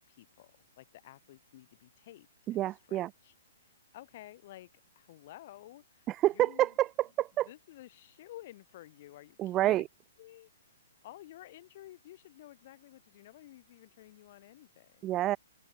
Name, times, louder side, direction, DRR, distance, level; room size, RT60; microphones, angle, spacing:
voice 1, 0.1-3.3 3.6-6.7 7.4-9.9 10.2-10.5 11.0-15.2, left 15 dB, 45° left, 4.7 m, -52 dB
voice 2, 2.5-3.1 6.1-7.5 9.4-9.8 15.0-15.4, right 14 dB, 25° right, 0.4 m, -28 dB
figure-of-eight pair, 120°, 0 cm